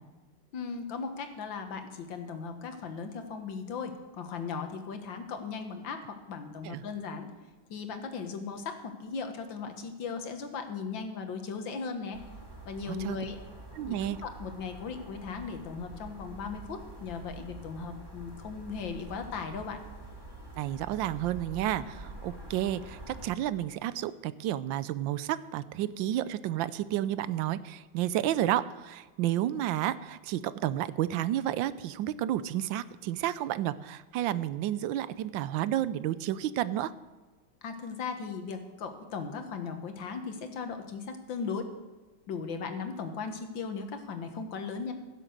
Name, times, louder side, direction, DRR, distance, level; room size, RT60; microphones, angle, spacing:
voice 1, 0.5-7.3 7.7-12.2 12.7-13.4 13.9-19.8 37.6-41.7 42.3-44.9, left 5 dB, 75° left, 7 dB, 2.0 m, -37 dB
sound 1, 12.1-23.3, right 1 dB, 15° right, 1.7 m, -46 dB
voice 2, 12.9-13.2 13.8-14.2 20.6-36.9, right 12 dB, 80° right, 16 dB, 1.3 m, -31 dB
16.0 x 7.5 x 6.5 m, 1.3 s
omnidirectional pair, 2.1 m